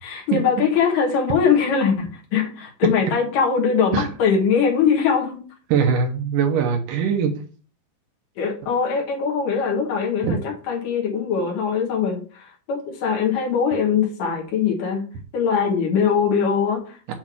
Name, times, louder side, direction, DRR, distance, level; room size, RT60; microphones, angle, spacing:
voice 1, 0.0-5.4 8.4-12.2 12.7-15.0 15.3-17.1, left 6 dB, 70° left, 2.7 m, -21 dB
voice 2, 5.7-7.3 10.2-10.3 17.1-17.2, right 6 dB, 75° right, 2.3 m, -21 dB
7.5 x 3.2 x 6.0 m
omnidirectional pair, 4.2 m